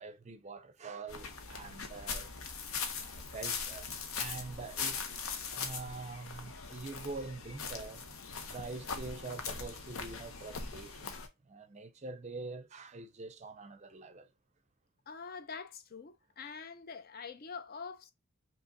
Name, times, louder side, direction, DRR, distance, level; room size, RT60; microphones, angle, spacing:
voice 1, 0.0-2.3 2.9-8.0 8.5-11.1 11.4-14.3, right 3 dB, 30° right, 0.5 m, -45 dB
sound 1, 1.1-11.3, left 5 dB, 75° left, 0.8 m, -41 dB
voice 2, 15.1-18.1, left 5 dB, 45° left, 0.5 m, -45 dB
5.3 x 3.0 x 2.6 m
head